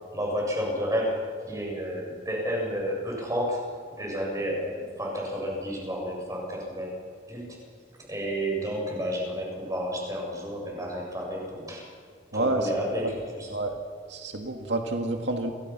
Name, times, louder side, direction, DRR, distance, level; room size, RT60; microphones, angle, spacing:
voice 1, 0.1-1.2 1.5-3.6 4.0-6.9 7.3-7.6 8.1-11.9 12.3-13.5, equal, 20° right, -1 dB, 7.5 m, -31 dB
voice 2, 12.3-12.7 13.0-13.1 13.5-13.8 14.1-15.5, right 2 dB, 80° right, 4 dB, 2.0 m, -28 dB
30.0 x 23.0 x 6.0 m, 2.1 s
head